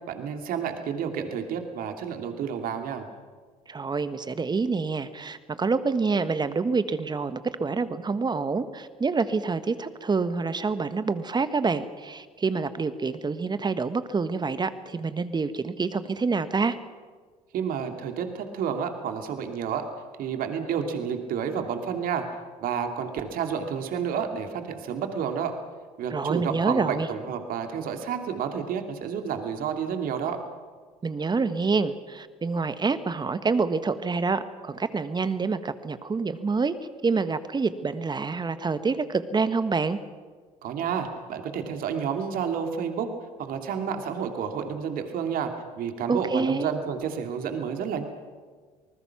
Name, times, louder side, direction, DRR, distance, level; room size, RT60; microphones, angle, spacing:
voice 1, 0.1-3.1 17.5-19.9 20.2-22.2 22.6-25.5 26.0-30.4 40.6-43.1 43.4-45.5 45.8-48.0, right 7 dB, 55° right, 6 dB, 2.7 m, -30 dB
voice 2, 3.7-16.8 26.1-27.1 31.0-36.7 37.0-40.0 46.1-46.7, right 4 dB, 25° right, 12 dB, 1.5 m, -27 dB
27.0 x 20.0 x 6.0 m, 1.5 s
hypercardioid pair, 60°, 18 cm